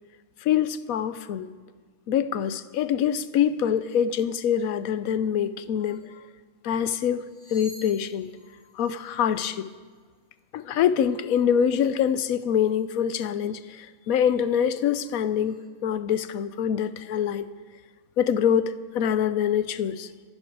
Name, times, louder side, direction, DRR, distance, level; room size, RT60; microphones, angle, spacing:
voice 1, 0.4-1.5 2.1-6.0 6.6-7.3 7.5-8.3 8.8-9.7 10.5-15.5 15.8-17.5 18.2-20.1, left 8 dB, 80° left, 13 dB, 1.2 m, -25 dB
sound 1, 5.2-5.4 5.7-6.1 7.0-10.1 12.4-12.7 13.5-13.8 14.2-15.7, right 1 dB, 15° right, 4.4 m, -53 dB
27.0 x 9.8 x 4.7 m, 1.5 s
omnidirectional pair, 1.5 m